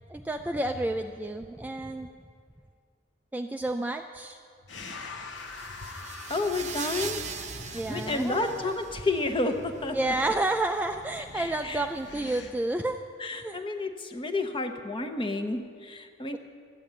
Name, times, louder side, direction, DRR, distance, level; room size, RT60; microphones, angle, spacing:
voice 1, 0.1-2.1 3.3-4.4 7.7-8.7 9.9-13.6, right 2 dB, 10° right, 5 dB, 0.3 m, -30 dB
sound 1, 4.7-12.5, left 3 dB, 65° left, 1.1 m, -44 dB
sound 2, 5.4-9.2, right 7 dB, 35° right, 0.8 m, -40 dB
voice 2, 6.3-7.2 7.6-10.0 11.3-11.9 13.2-16.4, left 2 dB, 25° left, 6 dB, 0.9 m, -30 dB
13.0 x 8.8 x 8.8 m, 2.2 s
head